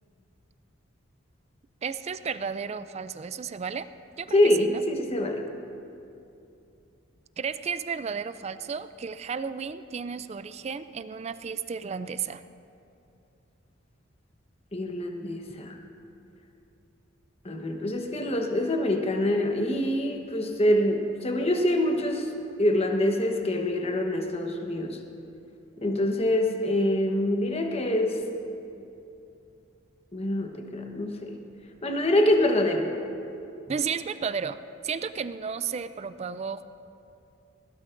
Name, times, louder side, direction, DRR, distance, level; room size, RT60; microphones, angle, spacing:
voice 1, 1.8-3.9 4.2-4.8 7.4-12.4 33.7-36.6, right 6 dB, 30° right, 13 dB, 0.3 m, -33 dB
voice 2, 4.3-5.5 14.7-15.8 17.4-22.3 22.6-25.0 25.8-28.2 30.1-31.4 31.8-32.9, left 1 dB, 30° left, 4 dB, 1.1 m, -25 dB
20.5 x 16.5 x 2.6 m, 2.7 s
head